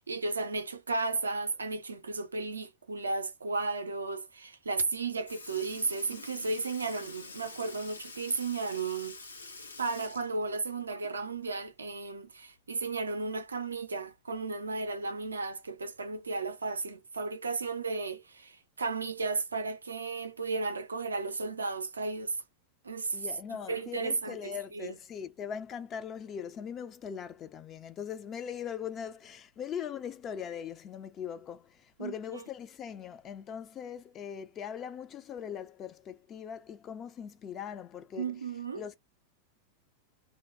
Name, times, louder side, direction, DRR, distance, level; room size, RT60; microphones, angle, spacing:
voice 1, 0.0-9.2 9.8-22.4 22.8-23.3 23.7-24.9 32.0-32.4 38.2-38.8, right 3 dB, 75° right, 0.4 m, -34 dB
Sink (filling or washing) / Liquid, 4.8-4.9 5.3-11.4 11.7-11.8 13.4-13.5 14.4-14.5 15.3-15.5 16.3-16.4, left 3 dB, 75° left, 0.6 m, -47 dB
voice 2, 23.1-38.3 38.8-38.9, left 8 dB, 30° left, 0.4 m, -40 dB
2.6 x 2.1 x 2.2 m
figure-of-eight pair, 90°, 0 cm